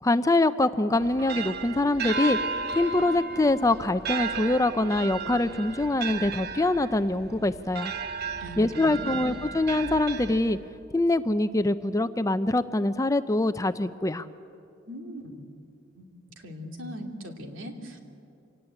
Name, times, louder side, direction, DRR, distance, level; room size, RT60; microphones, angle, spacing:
voice 1, 0.0-2.4 2.7-7.9 8.6-10.6 10.9-14.3, left 2 dB, 15° left, 12 dB, 0.5 m, -24 dB
sound 1, 0.9-10.8, right 4 dB, 50° right, 0.9 m, -34 dB
voice 2, 8.4-9.2 14.9-15.4 16.0-16.1 16.4-18.0, equal, 75° right, 3 dB, 2.8 m, -39 dB
26.5 x 18.0 x 8.8 m, 2.5 s
head